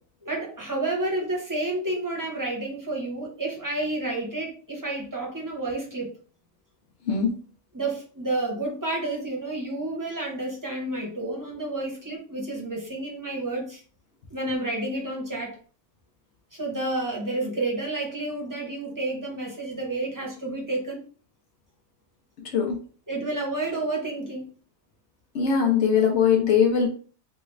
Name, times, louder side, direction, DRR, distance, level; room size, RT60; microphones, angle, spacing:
voice 1, 0.2-6.2 7.7-13.8 14.3-15.6 16.5-21.0 23.1-24.5, right 2 dB, 20° right, -1 dB, 0.8 m, -30 dB
voice 2, 7.1-7.4 22.4-22.8 25.3-26.9, left 7 dB, 70° left, 1 dB, 1.0 m, -21 dB
3.2 x 2.4 x 3.1 m, 0.40 s
omnidirectional pair, 1.3 m